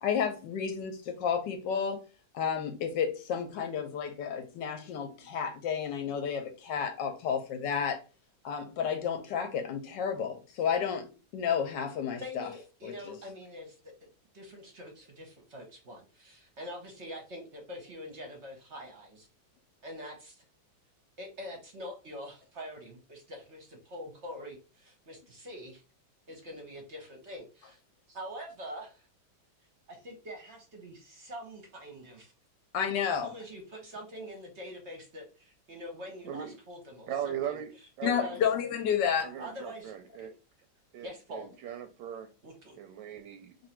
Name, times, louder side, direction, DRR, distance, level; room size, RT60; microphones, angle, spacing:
voice 1, 0.0-2.0 2.3-8.0 8.4-12.5 12.8-12.9 32.7-33.3 38.0-39.4, left 7 dB, 75° left, 1.2 m, -31 dB
voice 2, 12.1-13.9 14.3-19.3 19.8-20.4 21.2-25.8 26.3-27.8 28.1-29.1 29.9-32.3 32.8-37.6 38.1-38.4 39.4-39.9 40.2-40.3 41.0-41.5 42.4-42.8, equal, 50° right, 0.8 m, -44 dB
voice 3, 36.2-36.6 37.1-37.7 38.0-38.3 39.2-40.3 40.9-42.3 42.7-43.6, right 9 dB, 75° right, 1.1 m, -38 dB
3.1 x 2.6 x 4.2 m
omnidirectional pair, 2.1 m